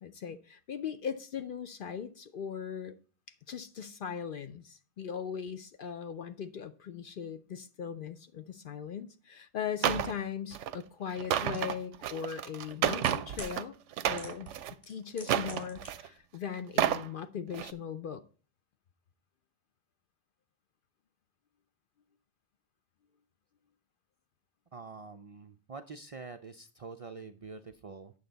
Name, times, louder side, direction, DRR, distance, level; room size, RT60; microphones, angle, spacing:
voice 1, 0.0-2.9 3.5-13.8 14.1-14.5 14.9-18.2, left 7 dB, 60° left, 0.6 m, -39 dB
sound 1, 9.8-10.1 10.5-10.8 11.1-13.6 13.9-14.7 15.2-16.1 16.6-17.1 17.5-17.7, right 10 dB, 90° right, 0.9 m, -31 dB
sound 2, 11.5-11.6 12.6-13.5 14.2-14.6 14.8-15.9 16.1-16.2, left 1 dB, 35° left, 3.2 m, -46 dB
voice 2, 24.7-28.1, right 4 dB, 60° right, 0.3 m, -46 dB
8.8 x 6.7 x 3.9 m
omnidirectional pair, 1.2 m